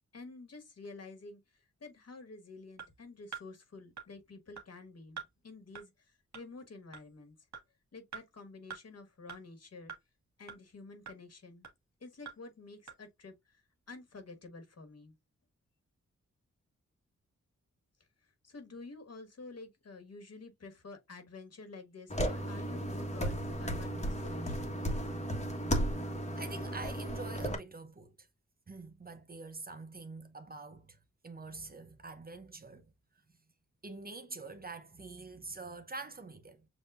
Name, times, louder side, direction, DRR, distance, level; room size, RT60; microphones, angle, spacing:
voice 1, 0.1-7.3 7.9-9.9 10.4-11.7 12.0-15.1 18.2-24.6, left 3 dB, 60° left, 1.7 m, -50 dB
sound 1, 2.8-2.9 3.3-3.5 4.0-4.1 4.6-4.7 5.2-5.3 5.8-5.9 6.3-6.4 6.9-7.0 7.5-7.6 8.1-8.2 8.7-8.8 9.3-9.4 9.9-10.0 10.5-10.6 11.1-11.2 11.6-11.7 12.3-12.4 12.9-13.0, right 6 dB, 75° right, 1.5 m, -44 dB
sound 2, 22.1-27.5, equal, 25° left, 1.3 m, -34 dB
voice 2, 26.3-28.3 28.7-31.0 31.2-32.9 33.8-36.7, right 3 dB, 30° right, 0.7 m, -46 dB
7.3 x 2.7 x 2.5 m
wide cardioid pair, 90°, 29 cm